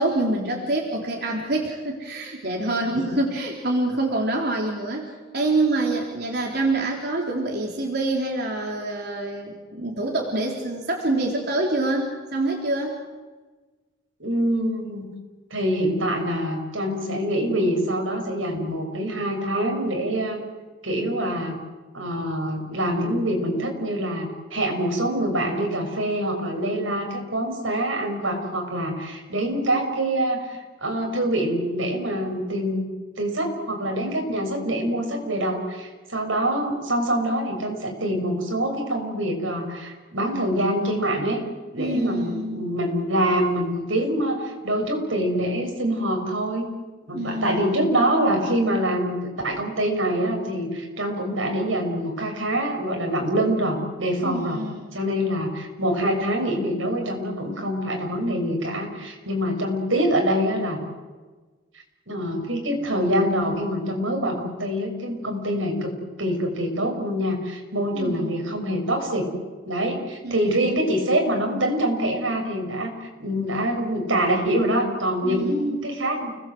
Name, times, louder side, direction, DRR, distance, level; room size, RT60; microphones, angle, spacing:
voice 1, 0.0-13.0 41.8-42.7 47.1-47.8 54.2-55.0 67.9-68.6 70.2-70.7 75.2-75.8, right 2 dB, 55° right, -1 dB, 3.9 m, -26 dB
voice 2, 14.2-15.1 15.5-20.4 20.8-21.6 21.9-32.9 33.2-41.4 41.7-46.7 47.1-54.6 54.9-60.8 62.1-69.3 69.7-76.3, right 1 dB, 85° right, 2 dB, 6.3 m, -25 dB
30.0 x 20.0 x 7.9 m, 1.3 s
head